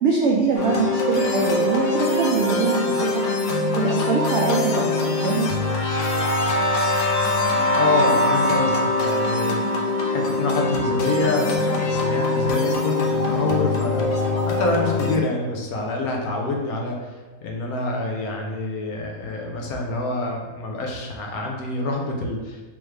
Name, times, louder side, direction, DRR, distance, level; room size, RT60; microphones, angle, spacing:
voice 1, 0.0-3.2 3.7-5.5, right 4 dB, 85° right, -2 dB, 0.6 m, -23 dB
sound 1, 0.5-15.2, left 2 dB, 90° left, 1.2 m, -23 dB
voice 2, 7.8-22.6, left 3 dB, 70° left, 0 dB, 1.0 m, -26 dB
3.5 x 3.1 x 3.2 m, 1.3 s
omnidirectional pair, 1.7 m